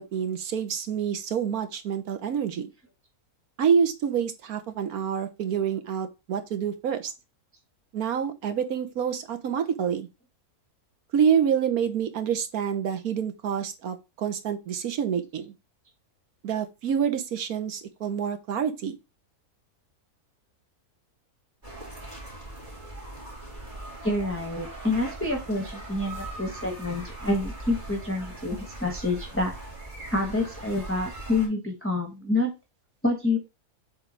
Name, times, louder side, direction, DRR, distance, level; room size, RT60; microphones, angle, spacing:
voice 1, 0.0-2.7 3.6-7.1 7.9-10.1 11.1-15.5 16.4-18.9, right 7 dB, 70° right, 1.4 m, -27 dB
sound 1, 21.6-31.5, right 2 dB, 30° right, 3.1 m, -40 dB
voice 2, 24.0-29.5 30.1-32.5 33.0-33.4, left 2 dB, 10° left, 0.9 m, -27 dB
7.8 x 3.4 x 3.9 m
omnidirectional pair, 1.6 m